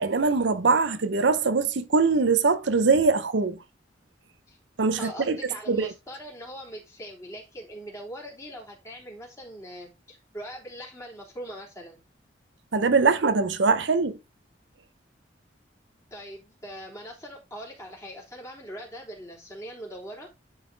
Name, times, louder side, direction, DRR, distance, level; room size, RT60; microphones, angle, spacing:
voice 1, 0.0-3.6 4.8-5.4 5.7-5.9 12.7-14.2, right 4 dB, 70° right, 0.7 m, -22 dB
voice 2, 5.0-12.0 16.1-20.3, equal, 15° left, 3.5 m, -41 dB
10.5 x 4.0 x 3.9 m
head